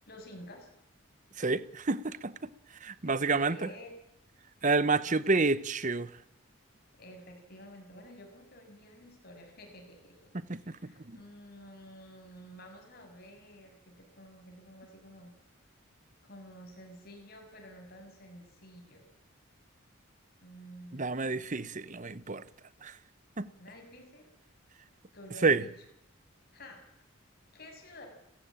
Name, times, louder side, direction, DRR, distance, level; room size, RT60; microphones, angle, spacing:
voice 1, 0.0-0.7 3.0-4.0 4.6-4.7 5.0-5.4 6.9-15.3 16.2-19.0 20.4-21.7 23.6-24.5 25.1-25.9 26.5-26.9 27.5-28.1, equal, 45° left, 6.7 m, -51 dB
voice 2, 1.4-2.3 2.8-3.6 4.6-6.1 20.9-22.4 22.8-22.9 23.4-23.5 25.4-25.6, right 3 dB, 35° right, 0.9 m, -28 dB
29.0 x 15.0 x 8.9 m
head